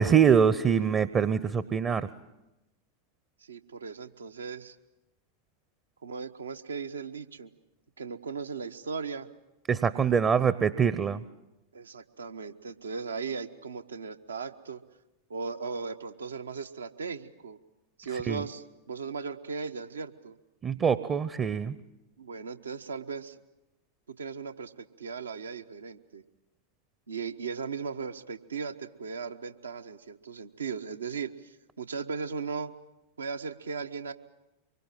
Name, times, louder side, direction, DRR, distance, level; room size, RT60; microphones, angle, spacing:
voice 1, 0.0-2.1 9.7-11.2 18.3-18.4 20.6-21.8, right 7 dB, 25° right, 16 dB, 0.8 m, -24 dB
voice 2, 3.4-4.8 6.0-7.5 8.0-9.3 11.7-14.8 15.3-17.6 18.0-20.4 22.2-23.4 24.1-26.2 27.1-32.7 33.2-34.1, right 5 dB, 70° right, 9 dB, 1.1 m, -37 dB
25.0 x 23.0 x 7.6 m, 0.96 s
figure-of-eight pair, 90°, 0 cm